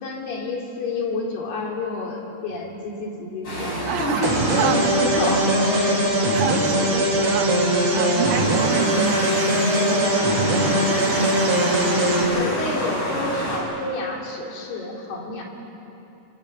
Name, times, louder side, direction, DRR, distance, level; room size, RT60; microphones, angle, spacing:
voice 1, 0.0-6.1 9.7-11.9 12.3-15.4, left 2 dB, 65° left, -1 dB, 5.3 m, -30 dB
sound 1, 3.4-13.6, equal, 30° left, 6.1 m, -29 dB
voice 2, 3.9-4.3 4.6-5.2 6.3-7.5 7.9-9.3, right 7 dB, 90° right, 5 dB, 3.8 m, -27 dB
sound 2, 4.2-12.2, right 1 dB, 60° right, 7.7 m, -21 dB
27.5 x 24.0 x 8.3 m, 2.9 s
omnidirectional pair, 5.0 m